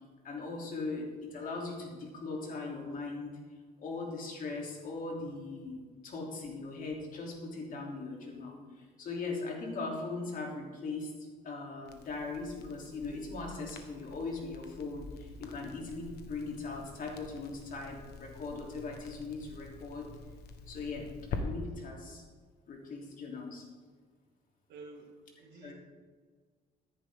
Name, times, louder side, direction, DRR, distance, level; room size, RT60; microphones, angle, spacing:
voice 1, 0.2-3.3 3.8-11.1 11.4-20.1 20.7-22.2 22.7-23.7 25.6-25.7, left 3 dB, 55° left, -1 dB, 3.3 m, -39 dB
Crackle, 11.9-21.4, left 4 dB, 70° left, 1.4 m, -47 dB
voice 2, 24.7-25.1 25.4-25.7, right 3 dB, 80° right, 1 dB, 2.4 m, -49 dB
14.0 x 10.0 x 3.8 m, 1.5 s
cardioid pair, 110°, 17 cm